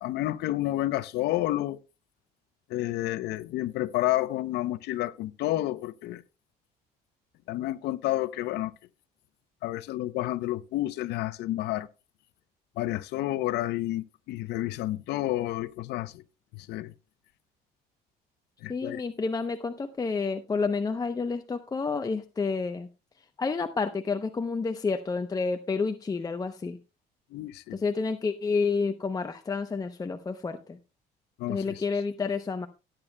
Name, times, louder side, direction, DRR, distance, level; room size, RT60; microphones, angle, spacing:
voice 1, 0.0-1.8 2.7-6.2 7.5-8.7 9.6-11.9 12.8-16.2 16.5-16.9 18.6-19.0 27.3-27.8 31.4-31.7, left 15 dB, 80° left, 0.7 m, -30 dB
voice 2, 18.7-22.9 23.4-26.8 27.7-30.8 31.5-32.7, left 4 dB, 20° left, 0.7 m, -29 dB
17.5 x 8.8 x 2.2 m
cardioid pair, 110°, 17 cm